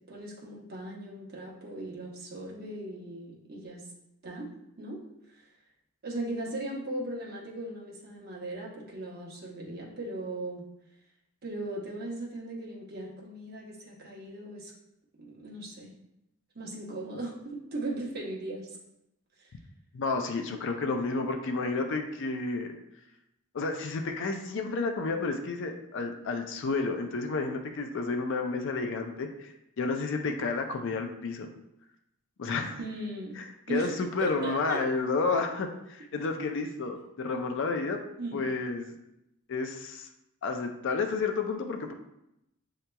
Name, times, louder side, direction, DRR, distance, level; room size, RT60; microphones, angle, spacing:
voice 1, 0.1-3.8 4.2-4.5 4.8-5.0 5.3-5.4 6.0-10.6 11.4-14.7 15.1-15.9 16.5-18.8 19.4-19.5 32.8-33.4 33.7-34.8 38.2-38.4, right 1 dB, 45° right, -3 dB, 1.0 m, -38 dB
voice 2, 19.9-22.7 23.5-31.5 32.4-32.8 33.4-38.0 38.3-38.9 39.5-40.1 40.4-41.9, left 3 dB, 55° left, 5 dB, 0.4 m, -31 dB
7.7 x 2.8 x 2.2 m, 0.85 s
head